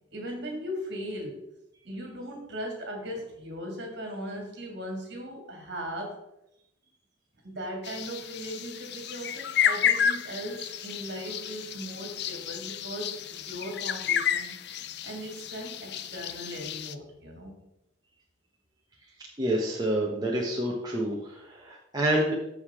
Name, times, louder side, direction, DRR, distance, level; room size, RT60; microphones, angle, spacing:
voice 1, 0.1-1.4 1.8-6.2 7.4-14.5 15.0-17.6, equal, 55° right, 1 dB, 2.3 m, -38 dB
sound 1, 7.8-16.9, left 8 dB, 55° left, 0.5 m, -31 dB
voice 2, 19.4-22.3, right 1 dB, 20° right, -3 dB, 1.1 m, -28 dB
14.5 x 5.0 x 3.7 m, 0.84 s
head